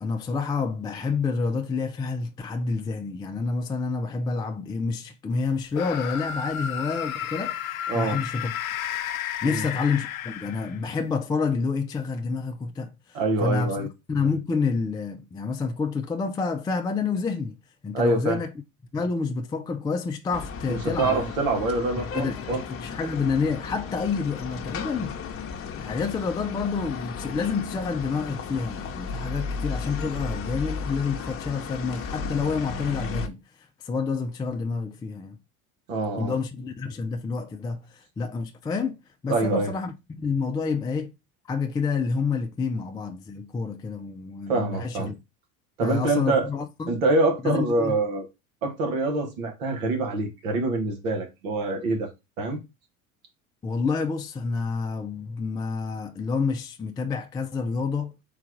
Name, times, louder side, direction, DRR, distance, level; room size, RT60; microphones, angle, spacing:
voice 1, 0.0-8.5 9.4-17.5 17.8-18.5 18.9-21.3 22.1-25.2 25.8-33.4 33.8-35.4 36.2-41.1 41.5-45.1 45.8-46.9 47.4-48.0 53.6-58.1, left 4 dB, 10° left, 0.3 m, -28 dB
sound 1, 5.7-10.9, left 9 dB, 85° left, 0.6 m, -32 dB
voice 2, 7.9-8.2 9.4-9.6 13.1-13.9 17.9-18.4 20.7-22.6 35.9-36.3 39.3-39.7 44.5-45.1 45.8-46.5 46.9-48.3 48.6-52.1 52.4-52.6, right 2 dB, 75° right, 1.4 m, -25 dB
sound 2, 20.3-33.3, left 5 dB, 35° left, 0.8 m, -34 dB
3.9 x 2.4 x 4.6 m
hypercardioid pair, 80°, 41 cm